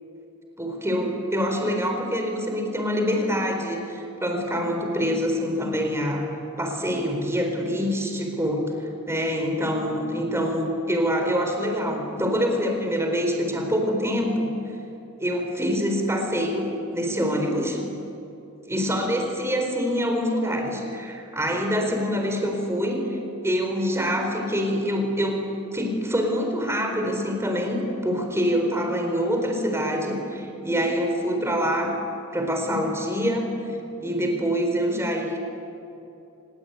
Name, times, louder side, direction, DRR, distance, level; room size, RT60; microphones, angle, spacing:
voice 1, 0.6-6.3 6.6-14.5 15.2-17.8 18.7-23.2 23.4-31.9 32.3-33.5 34.0-35.4, equal, 10° right, 3 dB, 4.2 m, -25 dB
25.0 x 20.5 x 9.5 m, 2.8 s
head